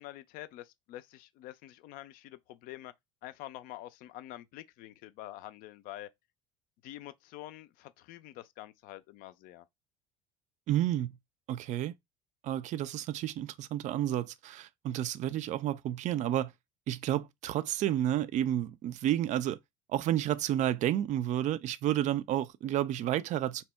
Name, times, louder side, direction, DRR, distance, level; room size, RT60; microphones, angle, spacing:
voice 1, 0.0-2.9 3.2-6.1 6.8-9.6, left 15 dB, 55° left, 0.4 m, -47 dB
voice 2, 10.7-11.2 11.5-11.9 12.4-16.5 16.9-19.6 19.9-23.6, right 12 dB, 45° right, 0.4 m, -31 dB
2.8 x 2.1 x 3.3 m
hypercardioid pair, 65°, 18 cm